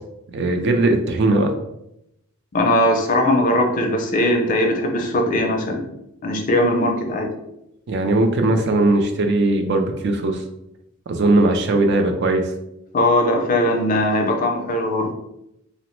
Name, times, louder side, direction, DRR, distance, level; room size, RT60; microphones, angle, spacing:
voice 1, 0.3-1.5 7.9-10.4 11.1-12.5, right 2 dB, 50° right, 5 dB, 0.3 m, -19 dB
voice 2, 2.5-5.8 6.2-7.3 12.9-15.1, left 1 dB, 40° left, 2 dB, 0.4 m, -19 dB
2.8 x 2.0 x 3.0 m, 0.81 s
head